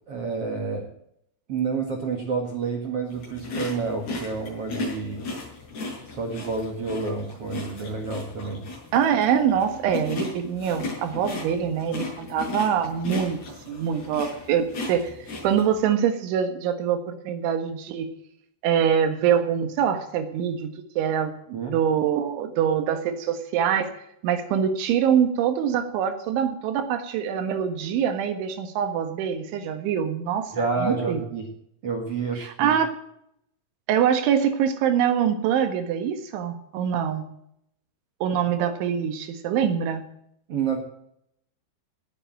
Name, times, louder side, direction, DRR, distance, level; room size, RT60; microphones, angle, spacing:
voice 1, 0.1-0.9 1.5-5.2 6.1-8.7 21.5-21.7 30.5-31.5 31.8-32.8 40.5-40.8, right 4 dB, 55° right, 2 dB, 1.7 m, -29 dB
sound 1, 3.1-15.8, left 2 dB, 55° left, 8.3 m, -36 dB
voice 2, 8.9-13.4 13.7-15.1 15.4-18.1 18.6-21.3 21.7-23.9 24.2-31.2 32.4-32.9 33.9-37.3 38.2-40.0, right 8 dB, 80° right, 8 dB, 3.9 m, -24 dB
18.5 x 8.0 x 7.5 m, 0.74 s
omnidirectional pair, 5.4 m